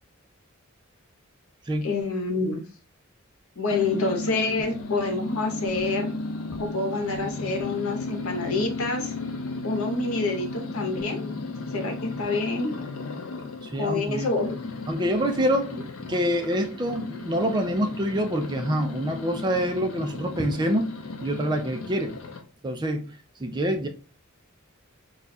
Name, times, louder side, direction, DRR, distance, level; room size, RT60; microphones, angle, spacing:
voice 1, 1.8-2.6 3.6-6.2 6.6-9.1 9.6-11.3 11.7-12.7 13.8-14.7, left 3 dB, 90° left, 0.8 m, -27 dB
sound 1, 3.7-22.4, left 3 dB, 70° left, 0.5 m, -35 dB
voice 2, 13.6-14.3 14.9-20.9 21.2-22.1 22.6-23.1 23.4-23.9, equal, 20° right, 0.4 m, -26 dB
2.4 x 2.3 x 4.0 m
head